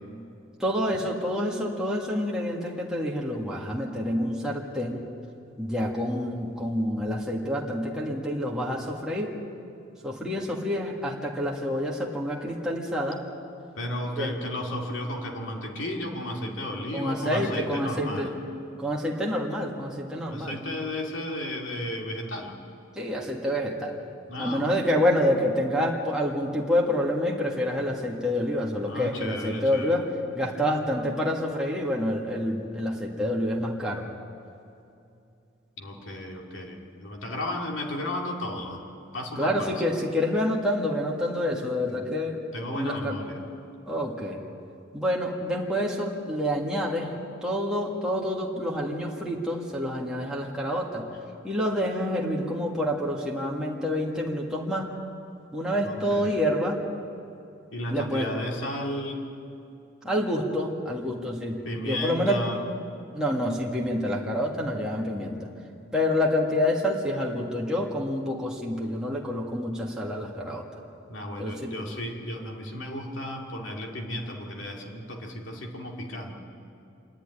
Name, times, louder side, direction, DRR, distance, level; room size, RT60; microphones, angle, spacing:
voice 1, 0.6-5.0 5.6-9.4 10.0-13.2 14.2-14.3 16.9-18.4 18.8-20.5 23.0-24.0 24.4-30.0 30.3-34.1 39.4-42.4 42.7-43.2 43.9-44.4 44.9-51.1 51.4-54.9 55.5-56.8 57.9-58.3 60.0-62.4 63.1-65.5 65.9-70.6 71.4-71.7, left 1 dB, 5° right, -3 dB, 1.8 m, -28 dB
voice 2, 13.8-18.3 20.3-22.6 24.3-24.7 28.9-30.0 35.8-38.8 39.1-39.7 41.8-42.0 42.5-43.4 55.8-56.4 57.7-59.2 61.6-62.6 71.1-76.3, left 1 dB, 70° left, 0 dB, 2.6 m, -34 dB
26.0 x 11.5 x 9.9 m, 2.6 s
head